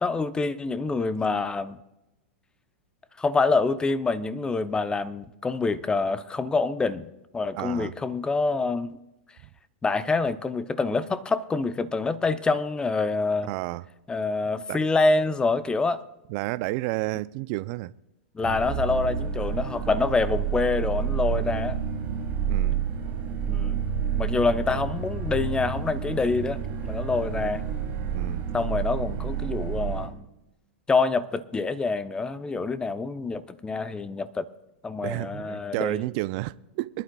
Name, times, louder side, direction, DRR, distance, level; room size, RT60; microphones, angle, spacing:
voice 1, 0.0-1.8 3.2-7.1 7.3-9.0 9.8-13.5 14.1-16.0 18.3-21.8 23.5-23.8 24.2-27.6 28.5-30.1 30.9-34.5 34.8-36.0, left 3 dB, 15° left, 0.7 m, -26 dB
voice 2, 7.5-7.9 13.5-13.8 14.7-14.8 16.3-17.9 22.5-22.8 28.1-28.6 35.0-37.0, right 20 dB, 50° right, 0.4 m, -31 dB
sound 1, 18.4-30.1, right 7 dB, 30° right, 2.6 m, -29 dB
23.0 x 11.5 x 2.3 m
hypercardioid pair, 115°, 6 cm